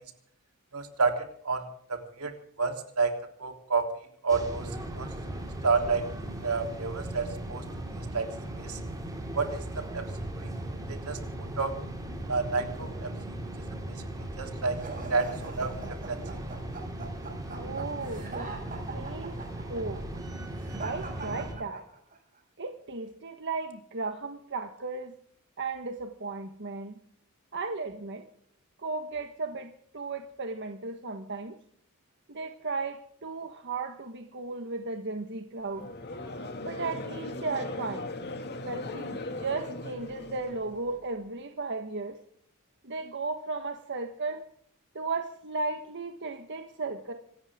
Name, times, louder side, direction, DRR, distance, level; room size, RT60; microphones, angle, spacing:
voice 1, 0.7-1.6 1.9-3.9 4.2-5.1 5.6-6.1 6.4-7.6 7.9-8.3 8.6-8.8 9.3-10.0 10.4-10.5 10.9-11.2 11.6-11.7 12.3-13.1 13.9-14.0 14.4-14.8 15.1-15.8 16.1-16.2, right 4 dB, 85° right, 4 dB, 3.4 m, -30 dB
sound 1, 4.3-21.5, right 1 dB, 15° right, 4.5 m, -38 dB
sound 2, 14.7-22.2, right 3 dB, 40° right, 6.6 m, -42 dB
voice 2, 17.5-18.5 18.9-19.4 19.7-20.1 20.8-21.9 22.6-25.1 25.6-27.0 27.5-28.2 28.8-31.6 32.3-35.9 36.6-38.1 38.7-42.2 42.8-44.4 44.9-47.1, right 3 dB, 55° right, 6 dB, 1.4 m, -35 dB
Conversation / Crowd, 35.7-41.0, left 2 dB, 50° left, 2.3 m, -38 dB
27.0 x 14.0 x 3.7 m, 0.64 s
head